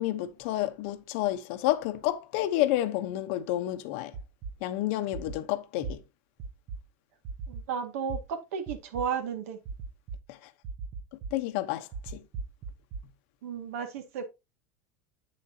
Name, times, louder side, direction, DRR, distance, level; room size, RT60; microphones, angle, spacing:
voice 1, 0.0-4.1 4.6-6.0 10.3-10.4 11.3-12.2, left 14 dB, 60° left, 1.0 m, -30 dB
sound 1, 4.1-4.5 5.1-5.4 5.8-5.9 6.4-6.8 7.2-7.6 8.1-8.2 8.7-9.0 9.7-10.2 10.6-11.3 11.9-13.0, right 4 dB, 40° right, 0.9 m, -37 dB
voice 2, 7.5-9.6 13.4-14.2, right 7 dB, 75° right, 2.1 m, -33 dB
8.8 x 7.3 x 2.9 m
supercardioid pair, 165°, 8 cm